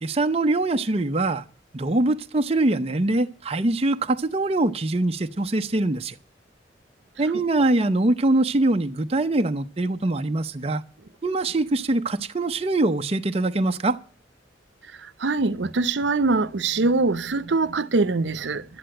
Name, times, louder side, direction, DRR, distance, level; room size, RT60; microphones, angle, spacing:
voice 1, 0.0-1.4 1.7-6.2 7.2-10.8 11.2-14.0, right 2 dB, 35° right, 0.6 m, -23 dB
voice 2, 15.2-18.6, right 3 dB, 80° right, 0.7 m, -23 dB
11.5 x 9.6 x 7.6 m
head